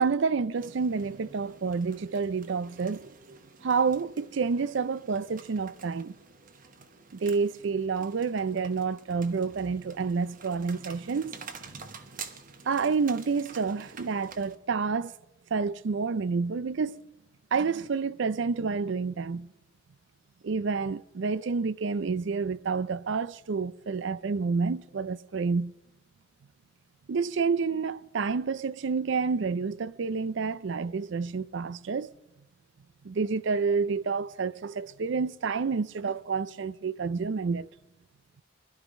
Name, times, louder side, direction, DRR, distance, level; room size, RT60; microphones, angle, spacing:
voice 1, 0.0-3.1 3.6-6.1 7.1-11.3 12.7-15.1 15.5-17.0 17.5-19.5 20.4-25.7 27.1-32.1 33.0-37.7, right 5 dB, 60° right, 0.4 m, -29 dB
sound 1, 0.6-14.6, right 5 dB, 40° right, 1.0 m, -49 dB
20.5 x 12.0 x 5.3 m
head